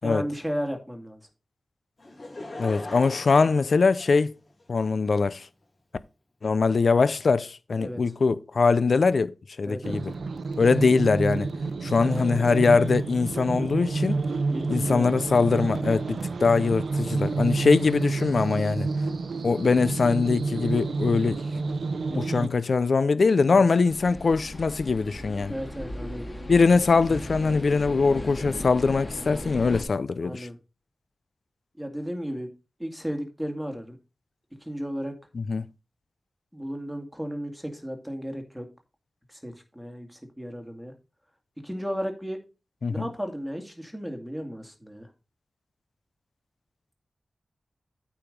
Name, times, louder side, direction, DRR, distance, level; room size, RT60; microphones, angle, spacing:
voice 1, 0.0-1.2 7.8-8.0 9.7-10.0 12.0-12.5 14.5-15.1 22.1-22.6 23.4-23.7 25.5-26.3 30.2-30.6 31.8-32.5 32.8-34.0 34.6-35.1 36.5-38.7 39.3-40.9 41.6-42.4 42.9-45.1, equal, ahead, 2.2 m, -34 dB
Laughter / Crowd, 2.0-4.6 5.3-5.4, left 2 dB, 50° left, 3.3 m, -40 dB
voice 2, 2.6-4.3 4.7-5.5 6.4-10.1 10.6-11.5 11.8-14.2 14.7-18.9 19.4-21.4 22.2-25.5 26.5-30.5 35.3-35.7 42.8-43.1, left 4 dB, 65° left, 0.6 m, -22 dB
sound 1, 9.8-22.5, right 3 dB, 85° right, 0.7 m, -29 dB
sound 2, 23.9-29.8, left 1 dB, 25° left, 2.3 m, -37 dB
8.8 x 4.9 x 5.2 m
wide cardioid pair, 80°, 0 cm